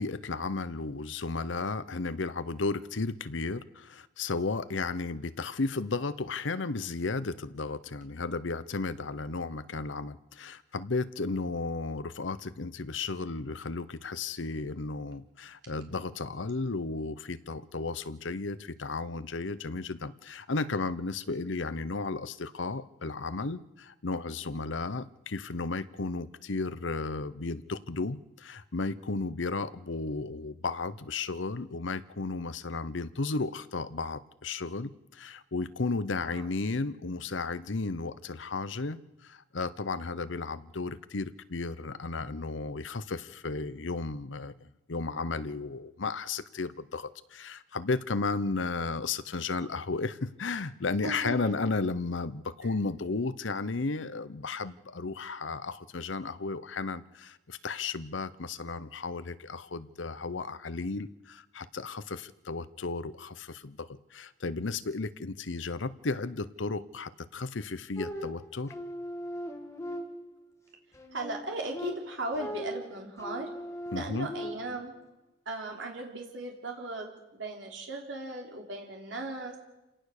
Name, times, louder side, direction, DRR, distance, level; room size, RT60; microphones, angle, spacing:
voice 1, 0.0-68.7 73.9-74.3, left 3 dB, 80° left, 14 dB, 0.9 m, -34 dB
voice 2, 51.0-51.6 71.1-73.5 73.9-74.9 75.5-79.6, right 2 dB, 80° right, 1 dB, 3.6 m, -37 dB
sound 1, 68.0-70.5 70.9-74.9, equal, 15° left, 2.4 m, -39 dB
28.0 x 18.0 x 6.7 m, 1.0 s
head